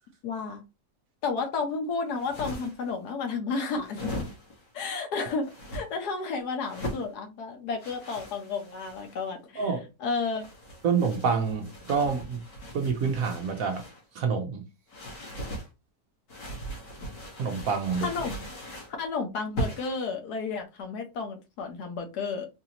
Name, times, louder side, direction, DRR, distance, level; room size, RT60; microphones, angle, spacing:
voice 1, 0.2-0.6 1.2-4.2 4.7-9.6 10.0-10.4 18.0-18.3 19.0-22.5, left 4 dB, 70° left, 1.4 m, -32 dB
sound 1, 2.1-2.9 3.8-4.7 5.4-5.8 6.6-7.1 7.8-9.2 10.2-14.0 14.9-15.7 16.3-19.0 19.6-20.0, equal, 90° left, 1.9 m, -39 dB
voice 2, 9.6-9.9 10.8-12.4 12.7-13.8 14.1-14.6 17.4-18.1, right 5 dB, 65° right, 0.9 m, -27 dB
4.0 x 2.7 x 2.8 m
omnidirectional pair, 1.8 m